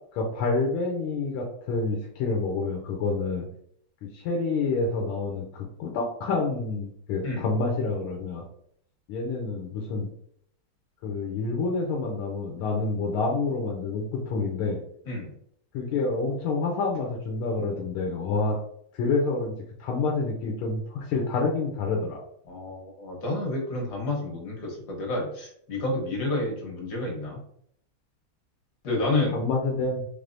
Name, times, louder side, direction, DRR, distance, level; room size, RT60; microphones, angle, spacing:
voice 1, 0.1-3.5 4.0-8.4 9.1-10.1 11.0-14.8 15.7-18.6 18.9-19.5 19.8-22.2 29.1-30.1, left 3 dB, 85° left, -1 dB, 1.5 m, -28 dB
voice 2, 22.5-27.4 28.8-29.4, left 2 dB, 55° left, -1 dB, 1.5 m, -30 dB
3.7 x 3.4 x 2.5 m, 0.66 s
omnidirectional pair, 2.3 m